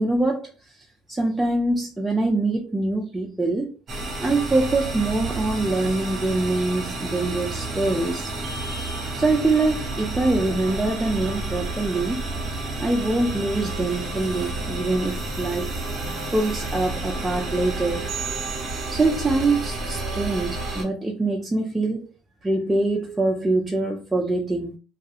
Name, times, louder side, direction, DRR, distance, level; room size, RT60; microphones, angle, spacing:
voice 1, 0.0-3.7 4.2-8.3 9.1-12.3 12.8-15.7 16.3-18.1 18.9-22.1 22.4-24.8, right 2 dB, 10° right, 0.3 m, -24 dB
sound 1, 3.9-20.8, right 2 dB, 30° right, 0.9 m, -30 dB
2.6 x 2.3 x 2.4 m
cardioid pair, 150°, 0 cm